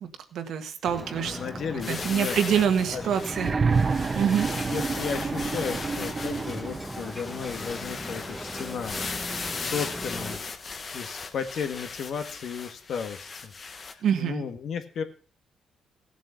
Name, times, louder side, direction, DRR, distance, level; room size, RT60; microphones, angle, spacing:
voice 1, 0.0-1.4 1.9-3.5 4.1-4.5 14.0-14.4, right 8 dB, 70° right, 7 dB, 1.6 m, -26 dB
Ocean, 0.8-10.4, equal, 5° right, 1.2 m, -39 dB
voice 2, 1.2-2.4 2.9-3.0 4.5-13.5 13.8-15.0, left 6 dB, 65° left, 8 dB, 1.6 m, -35 dB
sound 1, 1.8-13.9, left 4 dB, 40° left, 1.3 m, -37 dB
sound 2, 3.3-7.1 8.3-8.4, right 4 dB, 35° right, 0.6 m, -28 dB
15.5 x 7.5 x 5.8 m, 0.41 s
cardioid pair, 90°, 0 cm